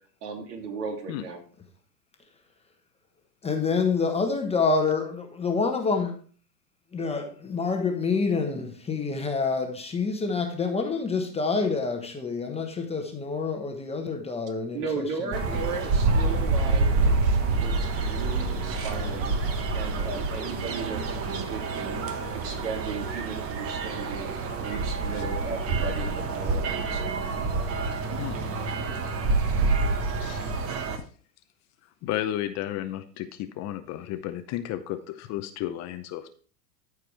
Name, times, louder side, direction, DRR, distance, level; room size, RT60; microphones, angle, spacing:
voice 1, 0.2-1.4 14.7-19.4 19.7-22.0 22.3-24.3 24.6-27.1, right 4 dB, 65° right, 2.9 m, -36 dB
voice 2, 3.4-6.1 6.9-14.8, left 4 dB, 10° left, 1.1 m, -27 dB
sound 1, 15.3-31.0, right 3 dB, 30° right, 1.1 m, -27 dB
voice 3, 30.0-31.0 31.8-36.3, left 12 dB, 35° left, 0.7 m, -34 dB
14.0 x 4.8 x 3.3 m
hypercardioid pair, 125°, 49 cm